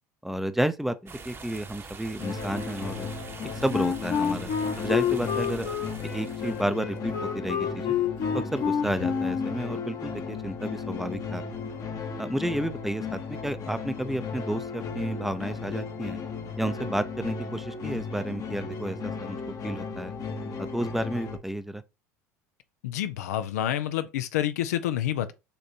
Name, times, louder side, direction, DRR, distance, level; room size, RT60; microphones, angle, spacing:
voice 1, 0.2-3.1 3.6-4.5 4.8-5.8 6.0-7.9 8.3-11.4 12.2-16.2 16.6-19.4 19.6-20.1 20.6-21.8, right 1 dB, 5° right, 0.6 m, -31 dB
sound 1, 1.1-6.6, right 4 dB, 30° right, 0.9 m, -44 dB
sound 2, 2.2-21.4, left 5 dB, 45° left, 1.0 m, -36 dB
Wind instrument woodwind instrument, 3.7-9.6, left 7 dB, 60° left, 1.2 m, -28 dB
voice 2, 22.8-25.3, left 11 dB, 80° left, 0.6 m, -28 dB
6.8 x 2.6 x 2.8 m
hypercardioid pair, 75°, 9 cm